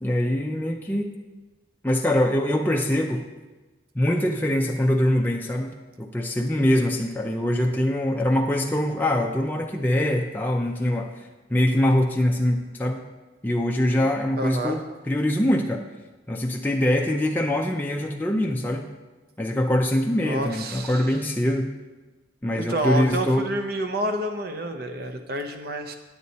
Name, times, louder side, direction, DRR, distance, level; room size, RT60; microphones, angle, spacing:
voice 1, 0.0-1.1 1.8-3.2 4.0-5.7 6.0-11.2 11.5-13.0 13.4-15.8 16.3-18.8 19.4-21.7 22.4-23.5, left 1 dB, 10° left, 1 dB, 0.4 m, -23 dB
voice 2, 14.3-14.8 20.2-21.1 22.7-25.9, right 1 dB, 55° right, 6 dB, 0.9 m, -29 dB
9.5 x 8.3 x 4.1 m, 1.2 s
head